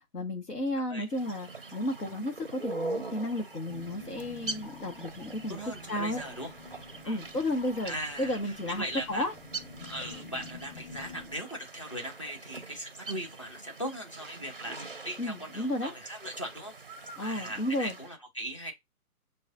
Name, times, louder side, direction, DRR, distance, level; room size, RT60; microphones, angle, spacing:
voice 1, 0.1-5.6 5.9-6.2 7.1-9.3 15.2-15.9 17.2-18.0, left 1 dB, 80° left, 1.1 m, -33 dB
sound 1, 1.1-18.1, right 3 dB, 40° right, 0.4 m, -43 dB
sound 2, 3.7-11.3, left 4 dB, 40° left, 1.0 m, -49 dB
voice 2, 5.5-6.5 7.0-7.2 7.8-9.3 9.9-16.7 17.2-18.7, right 1 dB, 20° left, 0.5 m, -39 dB
6.4 x 2.3 x 2.6 m
figure-of-eight pair, 145°, 46 cm